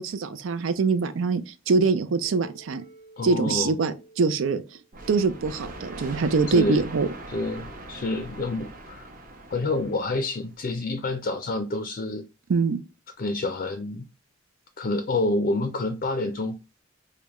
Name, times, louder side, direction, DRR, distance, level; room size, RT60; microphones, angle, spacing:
voice 1, 0.0-2.8 3.2-4.6 5.1-7.1 12.5-12.9, right 4 dB, 80° right, 0.5 m, -24 dB
sound 1, 2.2-7.8, right 3 dB, 25° right, 1.1 m, -52 dB
voice 2, 3.2-3.7 6.5-6.9 7.3-9.1 9.5-12.3 13.2-14.0 14.8-16.6, left 2 dB, 45° left, 0.4 m, -28 dB
sound 2, 4.9-10.5, right 2 dB, 45° right, 0.8 m, -41 dB
4.9 x 2.2 x 2.9 m
head